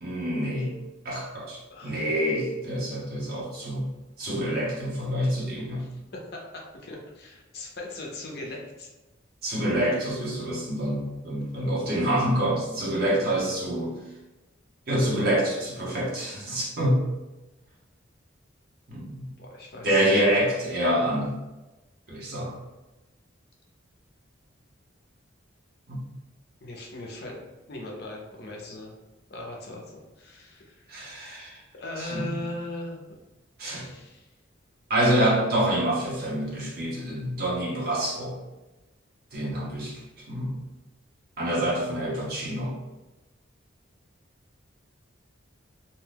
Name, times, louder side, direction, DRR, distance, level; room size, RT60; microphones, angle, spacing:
voice 1, 0.0-0.7 1.0-3.9 4.2-5.8 9.4-14.0 14.9-17.0 18.9-19.3 19.8-21.4 22.1-22.6 25.9-26.0 30.9-31.6 32.0-32.3 33.6-33.9 34.9-38.4 39.3-40.0 40.3-40.6 41.4-42.8, right 1 dB, 50° right, -5 dB, 0.8 m, -26 dB
voice 2, 1.7-2.0 5.8-8.9 19.4-20.2 26.6-27.4 27.7-28.9 29.3-31.0 31.7-33.0 33.6-34.3, left 2 dB, 50° left, -1 dB, 0.6 m, -39 dB
2.6 x 2.2 x 3.3 m, 1.1 s
head